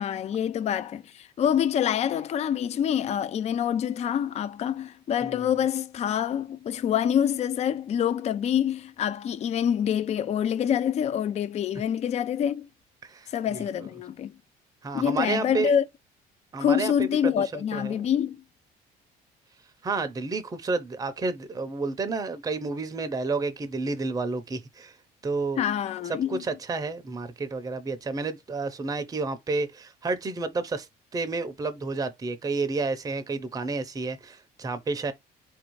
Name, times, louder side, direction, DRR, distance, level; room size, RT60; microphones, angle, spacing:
voice 1, 0.0-12.7 13.3-14.3 14.9-15.8 16.6-18.4 25.6-26.4, left 9 dB, 40° left, 0.4 m, -26 dB
voice 2, 13.0-13.6 14.8-15.7 16.5-18.1 19.8-25.0 25.2-25.6 26.1-30.9 31.1-35.1, right 3 dB, 20° right, 0.6 m, -30 dB
4.2 x 2.6 x 3.0 m
cardioid pair, 110°, 17 cm